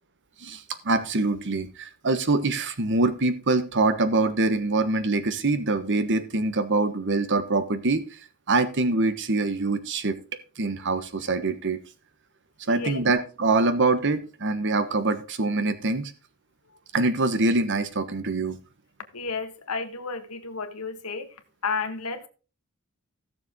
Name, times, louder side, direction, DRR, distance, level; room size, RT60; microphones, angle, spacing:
voice 1, 0.4-8.2 8.5-10.2 10.6-11.8 12.7-16.1 16.9-18.6, right 3 dB, 55° right, 1.2 m, -24 dB
voice 2, 12.7-13.0 19.1-21.3 21.6-22.3, left 4 dB, 90° left, 1.4 m, -32 dB
16.0 x 6.9 x 3.7 m
head